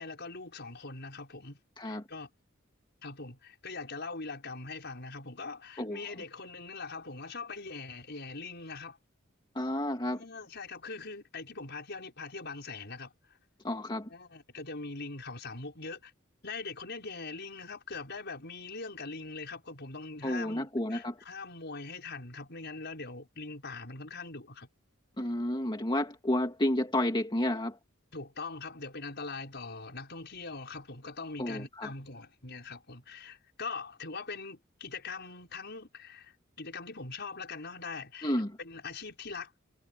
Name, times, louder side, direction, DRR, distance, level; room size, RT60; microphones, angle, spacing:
voice 1, 0.0-1.6 1.8-2.3 3.0-9.0 10.0-13.4 14.1-16.1 16.4-24.7 28.1-39.5, left 4 dB, 55° left, 6.3 m, -42 dB
voice 2, 9.5-10.2 13.6-14.1 20.2-21.2 25.2-27.8 31.4-31.9 38.2-38.6, left 1 dB, 25° left, 2.3 m, -31 dB
head